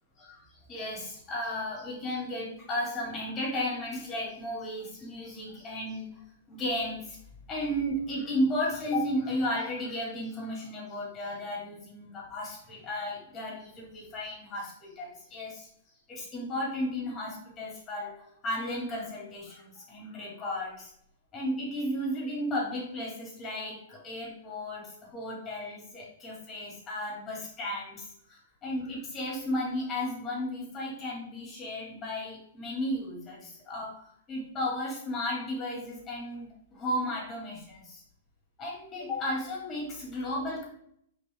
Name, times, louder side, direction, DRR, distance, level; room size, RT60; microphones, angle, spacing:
voice 1, 0.2-6.1 6.5-7.2 7.5-15.7 16.1-20.9 21.3-38.0 38.6-40.6, left 1 dB, 20° left, -3 dB, 3.1 m, -34 dB
6.3 x 5.1 x 4.7 m, 0.69 s
figure-of-eight pair, 105°, 0 cm